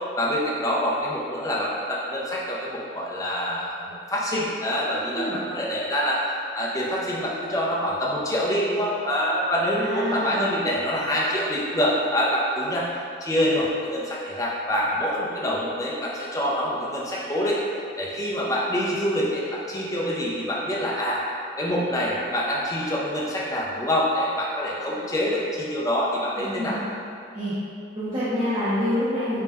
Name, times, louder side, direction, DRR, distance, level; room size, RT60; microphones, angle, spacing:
voice 1, 0.2-6.2 6.5-12.9 13.2-17.6 18.0-21.2 21.6-26.8, equal, 20° left, -5 dB, 0.5 m, -26 dB
voice 2, 9.7-10.5 26.4-26.8 27.3-27.6 27.9-29.4, equal, 25° right, -14 dB, 0.7 m, -27 dB
4.0 x 2.3 x 3.4 m, 2.4 s
head